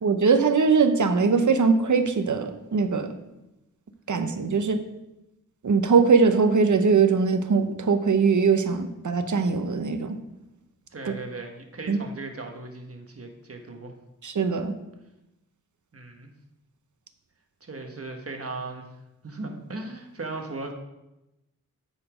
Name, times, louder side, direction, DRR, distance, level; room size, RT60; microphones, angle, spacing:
voice 1, 0.0-3.1 4.1-4.8 5.6-10.2 11.0-11.1 11.9-12.0 14.2-14.7, right 5 dB, 60° right, 8 dB, 0.8 m, -21 dB
voice 2, 10.9-13.9 15.9-16.3 17.6-20.7, right 3 dB, 45° right, 3 dB, 1.3 m, -37 dB
8.9 x 4.3 x 5.0 m, 0.93 s
wide cardioid pair, 70°, 33 cm